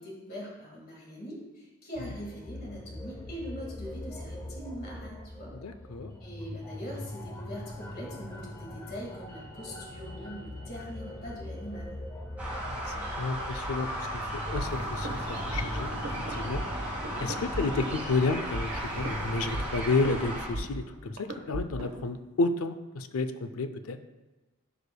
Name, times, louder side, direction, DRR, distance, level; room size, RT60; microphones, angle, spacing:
voice 1, 0.0-5.5 6.2-12.0, equal, 45° left, -2 dB, 2.0 m, -42 dB
sound 1, 1.9-18.9, left 1 dB, 15° left, 0.7 m, -42 dB
voice 2, 5.6-6.1 12.7-15.9 16.3-16.6 17.2-24.0, left 3 dB, 80° left, 9 dB, 0.5 m, -31 dB
sound 2, 12.4-20.5, right 1 dB, 10° right, 1.9 m, -35 dB
sound 3, 14.5-22.1, right 1 dB, 75° right, 1.2 m, -38 dB
14.5 x 5.0 x 2.3 m, 1.2 s
head